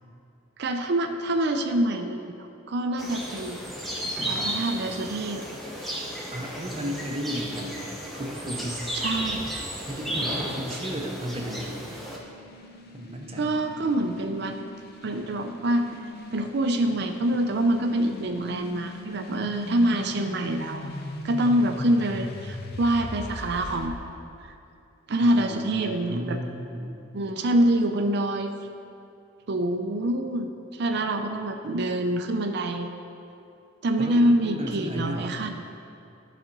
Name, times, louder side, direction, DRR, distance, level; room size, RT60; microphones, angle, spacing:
voice 1, 0.6-3.6 4.3-5.4 8.9-9.4 13.4-14.6 15.0-16.0 16.3-20.8 21.2-23.9 25.1-26.4 27.1-28.5 29.5-33.0 33.8-35.5, right 1 dB, 55° right, 5 dB, 0.5 m, -25 dB
sound 1, 3.0-12.2, equal, ahead, 0.9 m, -33 dB
sound 2, 6.2-23.9, left 1 dB, 50° left, 0.7 m, -41 dB
voice 2, 6.3-7.8 8.1-8.8 9.8-11.9 12.9-13.6 25.2-26.9 34.0-35.4, equal, 30° right, 1 dB, 0.8 m, -34 dB
11.5 x 4.2 x 5.3 m, 2.6 s
head